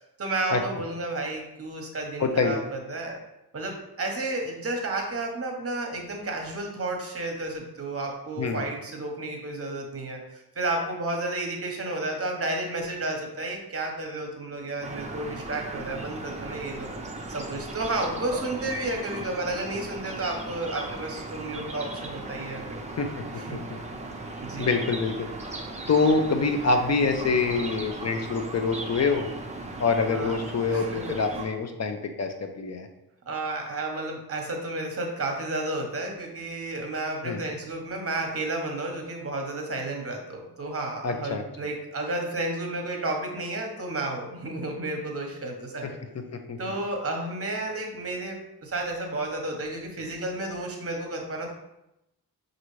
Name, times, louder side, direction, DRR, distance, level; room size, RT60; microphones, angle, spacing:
voice 1, 0.2-3.2 3.5-10.2 10.5-16.9 17.3-22.6 23.3-23.7 24.4-24.7 30.1-30.4 30.7-31.4 33.3-45.9 46.6-51.5, right 2 dB, 35° right, 2 dB, 0.9 m, -32 dB
voice 2, 2.2-2.6 8.4-8.6 23.0-23.2 23.5-23.6 24.6-25.3 25.9-29.3 29.8-32.9 37.2-37.4 41.0-41.4 46.5-46.6, left 4 dB, 40° left, 6 dB, 0.5 m, -25 dB
sound 1, 14.8-31.4, right 2 dB, 20° right, 0.5 m, -37 dB
5.5 x 2.6 x 3.1 m, 0.89 s
wide cardioid pair, 115°, 40 cm